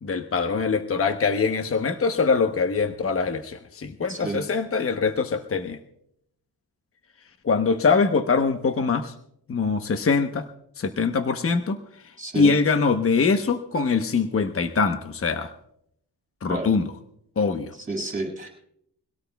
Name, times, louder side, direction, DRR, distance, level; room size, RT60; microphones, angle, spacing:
voice 1, 0.0-5.8 7.4-9.1 9.5-10.4 10.8-11.8 12.3-15.5 16.4-16.9 17.4-17.7, left 4 dB, 35° left, 7 dB, 1.0 m, -23 dB
voice 2, 4.1-4.4 12.2-12.5 16.5-16.7 17.9-18.5, right 2 dB, 20° right, 2 dB, 6.8 m, -30 dB
24.0 x 17.5 x 2.3 m, 0.72 s
cardioid pair, 100°, 38 cm